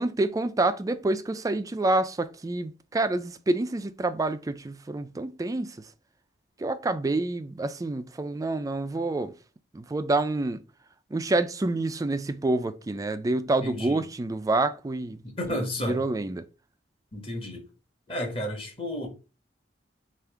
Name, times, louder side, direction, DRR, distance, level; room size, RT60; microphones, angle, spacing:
voice 1, 0.0-5.8 6.6-9.3 9.7-10.6 11.1-15.2 15.5-16.5, right 2 dB, 20° right, 0.3 m, -27 dB
voice 2, 13.6-14.0 15.2-16.0 17.1-17.6 18.1-19.1, left 1 dB, 30° left, 1.2 m, -32 dB
3.5 x 2.5 x 4.6 m
head